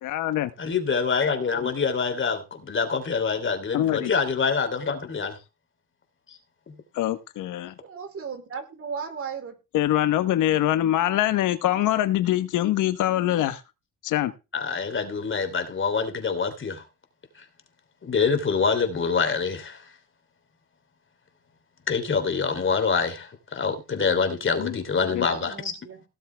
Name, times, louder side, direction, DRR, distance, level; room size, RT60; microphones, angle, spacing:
voice 1, 0.0-0.5 3.7-4.1 6.9-7.7 9.7-13.6 14.0-14.3 24.6-24.7 25.1-25.3, left 13 dB, 90° left, 1.2 m, -24 dB
voice 2, 0.6-5.4 6.3-6.4 6.7-6.8 14.5-16.8 17.4-17.5 18.0-19.9 21.9-25.8, left 5 dB, 40° left, 3.3 m, -26 dB
voice 3, 7.8-9.6 24.1-24.4 25.0-26.0, right 6 dB, 50° right, 3.9 m, -37 dB
17.5 x 7.2 x 3.4 m
cardioid pair, 90°, 30 cm